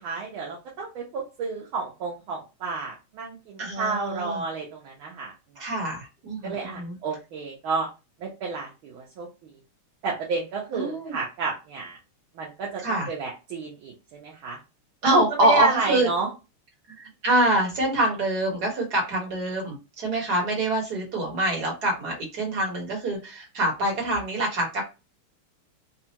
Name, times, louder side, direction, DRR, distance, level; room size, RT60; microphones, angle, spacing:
voice 1, 0.0-5.3 6.4-7.9 8.2-9.5 10.0-12.0 12.3-14.6 15.0-16.3, right 4 dB, 75° right, -2 dB, 1.6 m, -30 dB
voice 2, 3.6-4.4 5.6-6.9 10.7-11.2 12.8-13.1 15.0-16.1 17.0-24.8, right 1 dB, 50° right, -1 dB, 1.9 m, -25 dB
4.2 x 2.4 x 2.9 m, 0.28 s
omnidirectional pair, 2.4 m